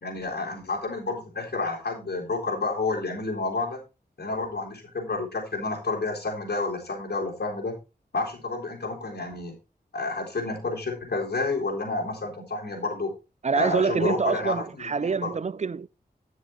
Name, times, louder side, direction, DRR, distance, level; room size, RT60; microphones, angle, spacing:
voice 1, 0.0-3.8 4.2-7.7 8.1-9.5 9.9-13.1 13.5-15.3, left 3 dB, 85° left, 3.7 m, -30 dB
voice 2, 13.4-15.9, right 5 dB, 45° right, 0.4 m, -26 dB
10.5 x 6.6 x 4.2 m
wide cardioid pair, 65°, 17 cm